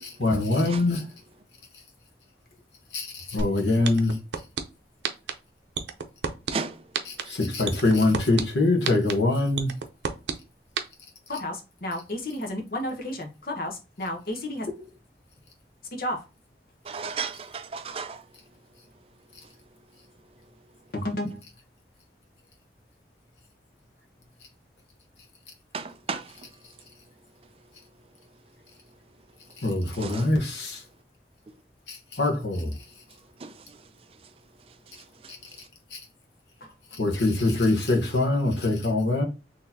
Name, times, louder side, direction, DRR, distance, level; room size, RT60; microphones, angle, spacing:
voice 1, 0.0-1.0 2.9-4.2 7.0-9.7 29.6-30.8 31.9-32.7 35.9-36.0 36.9-39.2, left 2 dB, 80° left, 1.1 m, -24 dB
sound 1, 3.4-3.5 3.8-4.6 5.0-5.3 5.7-6.5 6.9-7.2 7.7-8.4 8.8-9.1 9.6-10.3 10.8-10.9, right 6 dB, 85° right, 0.6 m, -27 dB
voice 2, 11.3-14.9 15.9-16.2 17.0-17.1 20.9-21.4 26.1-26.2 36.6-36.7, left 1 dB, 55° left, 1.0 m, -32 dB
voice 3, 16.9-18.2 25.7-26.2 30.0-30.2 33.4-33.5, right 5 dB, 30° right, 0.4 m, -33 dB
4.1 x 3.0 x 2.8 m
head